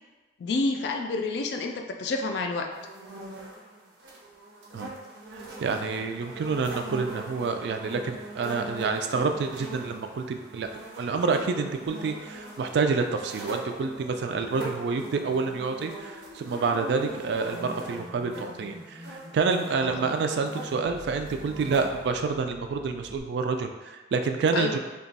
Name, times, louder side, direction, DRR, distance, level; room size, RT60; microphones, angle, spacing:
voice 1, 0.4-2.7 19.8-19.9 24.5-24.8, left 3 dB, 65° left, 4 dB, 0.3 m, -29 dB
sound 1, 2.7-22.2, right 2 dB, 85° right, 0.7 m, -42 dB
voice 2, 5.3-10.7 11.0-24.8, right 4 dB, 70° right, 6 dB, 0.3 m, -28 dB
sound 2, 12.1-23.2, equal, 5° right, 0.5 m, -47 dB
2.8 x 2.2 x 4.0 m, 1.2 s
head